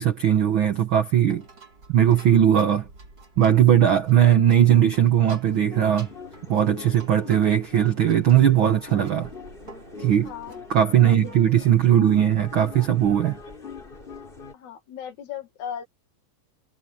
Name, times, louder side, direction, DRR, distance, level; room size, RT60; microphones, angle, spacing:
voice 1, 0.0-1.4 1.9-2.9 3.4-6.1 6.5-9.3 10.0-10.3 10.7-13.4, right 10 dB, 80° right, 1.1 m, -19 dB
sound 1, 1.2-11.4, right 3 dB, 30° right, 6.7 m, -49 dB
sound 2, 5.7-14.5, left 5 dB, 15° left, 3.2 m, -42 dB
voice 2, 10.2-10.6 11.0-11.6 14.5-15.9, left 9 dB, 60° left, 2.9 m, -37 dB
omnidirectional pair, 3.9 m